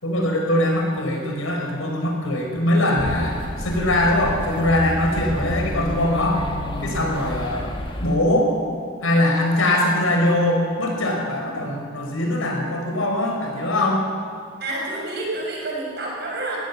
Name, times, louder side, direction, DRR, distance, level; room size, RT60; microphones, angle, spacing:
voice 1, 0.0-6.4 6.8-8.5 9.0-14.0, left 1 dB, 85° left, 1 dB, 4.8 m, -22 dB
sound 1, 3.0-8.2, equal, 25° left, 1.7 m, -30 dB
voice 2, 14.6-16.6, right 2 dB, 50° right, -2 dB, 6.3 m, -28 dB
22.5 x 16.0 x 7.3 m, 2.1 s
head